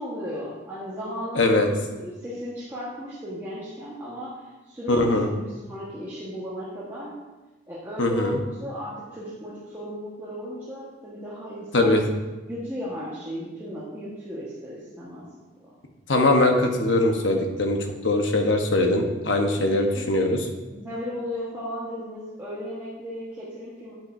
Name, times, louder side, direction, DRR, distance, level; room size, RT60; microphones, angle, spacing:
voice 1, 0.0-7.1 7.7-11.9 12.5-15.3 15.6-15.7 19.6-20.1 20.7-23.9, equal, 15° right, -9 dB, 1.4 m, -35 dB
voice 2, 1.3-1.7 4.9-5.3 8.0-8.4 11.7-12.0 16.1-17.8 18.0-20.4, left 2 dB, 85° left, 3 dB, 1.1 m, -21 dB
9.1 x 8.8 x 2.7 m, 1.2 s
head